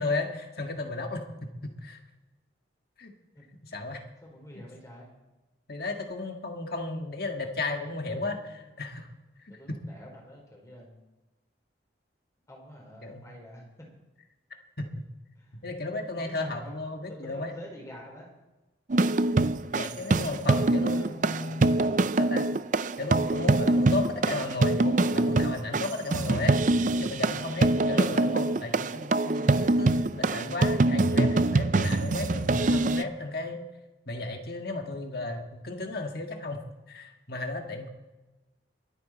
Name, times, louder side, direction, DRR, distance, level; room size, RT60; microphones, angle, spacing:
voice 1, 0.0-1.5 1.8-2.0 3.0-3.1 3.7-4.0 4.5-4.6 5.7-9.1 9.7-9.8 13.0-13.2 14.8-14.9 15.5-17.5 19.7-21.8 22.2-22.4 23.0-26.6 26.9-33.6 34.1-37.9, left 2 dB, 55° left, 3 dB, 1.8 m, -34 dB
voice 2, 4.2-5.1 8.1-8.7 9.5-11.0 12.5-13.9 15.4-15.6 16.2-18.3 19.6-19.7 20.9-21.6 33.0-33.3, equal, 15° left, -1 dB, 4.1 m, -48 dB
sound 1, 18.9-33.0, right 2 dB, 40° right, 0.5 m, -24 dB
23.0 x 9.2 x 4.3 m, 1.1 s
head